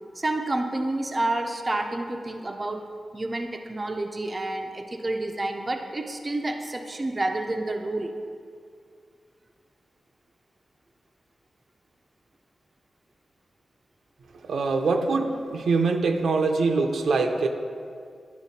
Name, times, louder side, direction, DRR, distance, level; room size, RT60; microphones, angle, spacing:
voice 1, 0.2-2.8 3.1-8.1, right 2 dB, 20° right, 4 dB, 0.4 m, -29 dB
voice 2, 14.4-17.5, right 4 dB, 80° right, 4 dB, 0.6 m, -23 dB
10.5 x 4.4 x 4.1 m, 2.2 s
wide cardioid pair, 160°, 0 cm